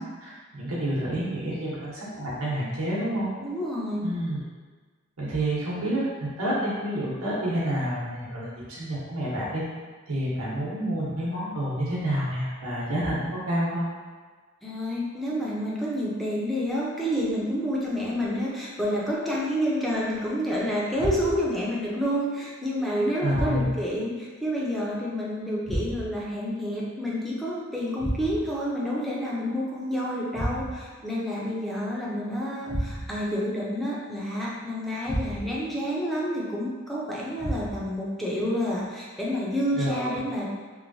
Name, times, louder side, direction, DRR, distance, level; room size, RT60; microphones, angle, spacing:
voice 1, 0.0-3.3 4.0-4.4 5.2-6.1 6.4-9.6 10.1-13.9 23.2-23.7 39.8-40.0, right 1 dB, 85° right, -7 dB, 0.9 m, -29 dB
voice 2, 3.4-4.1 14.6-40.5, equal, ahead, -6 dB, 0.5 m, -29 dB
sound 1, 21.0-21.6 23.3-23.9 25.6-26.3 28.0-28.6 30.3-31.0 32.7-33.3 35.0-35.7 37.4-38.0, equal, 20° left, 0.8 m, -32 dB
3.1 x 2.6 x 2.6 m, 1.4 s
head